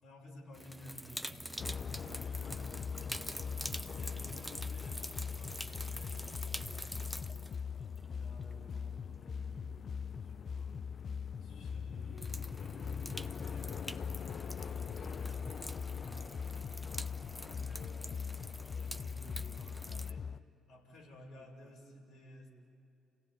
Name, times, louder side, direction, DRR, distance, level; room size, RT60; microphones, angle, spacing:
voice 1, 0.0-3.0 3.6-7.4 8.1-10.9 11.4-16.7 17.1-18.3 18.6-20.3 20.7-22.5, equal, 70° left, -2 dB, 5.4 m, -55 dB
sound 1, 0.5-9.8 10.7-10.8 12.2-20.1, equal, ahead, 0.8 m, -46 dB
sound 2, 1.6-20.4, left 6 dB, 50° left, 0.5 m, -41 dB
29.0 x 17.0 x 9.7 m, 2.7 s
hypercardioid pair, 50°, 0 cm